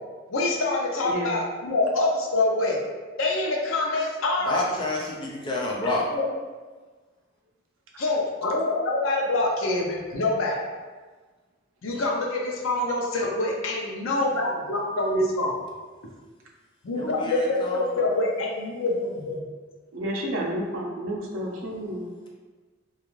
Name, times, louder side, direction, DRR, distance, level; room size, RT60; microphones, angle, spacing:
voice 1, 0.3-2.8 3.2-4.6 5.8-6.2 8.0-10.6 11.8-15.7 16.8-19.5, left 2 dB, 90° left, -1 dB, 0.6 m, -25 dB
voice 2, 1.0-1.4 7.9-8.0 19.9-22.1, right 1 dB, 85° right, -1 dB, 0.5 m, -31 dB
voice 3, 4.5-6.1 13.1-13.2 16.9-17.9, left 2 dB, 25° left, -2 dB, 0.4 m, -29 dB
2.4 x 2.4 x 3.0 m, 1.3 s
head